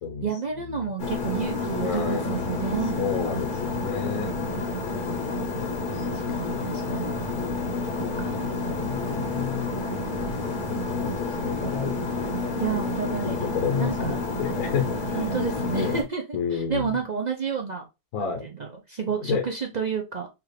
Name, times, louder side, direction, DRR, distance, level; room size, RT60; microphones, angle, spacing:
voice 1, 0.2-2.9 4.9-5.2 6.1-7.1 7.8-8.5 12.6-13.4 13.8-14.2 15.1-17.8 18.2-20.3, right 6 dB, 45° right, 2 dB, 0.6 m, -31 dB
sound 1, 1.0-16.0, left 3 dB, 45° left, 0.9 m, -29 dB
voice 2, 1.8-2.7 3.0-4.3 5.6-5.7 5.9-6.1 6.5-6.6 8.6-9.7 10.7-11.9 13.2-15.3 15.7-16.0 16.3-17.0 18.1-18.4 19.2-19.4, left 6 dB, 85° left, 3 dB, 1.2 m, -30 dB
4.7 x 2.4 x 3.1 m, 0.24 s
omnidirectional pair, 1.4 m